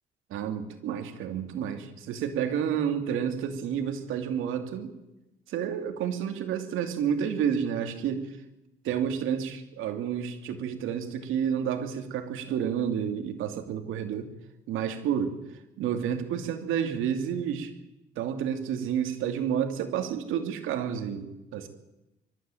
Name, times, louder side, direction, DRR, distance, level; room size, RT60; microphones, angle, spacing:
voice 1, 0.3-4.9 5.5-8.4 8.8-14.3 14.7-17.7 18.2-21.7, right 8 dB, 90° right, 7 dB, 2.6 m, -30 dB
24.0 x 13.0 x 9.0 m, 0.96 s
cardioid pair, 90°, 20 cm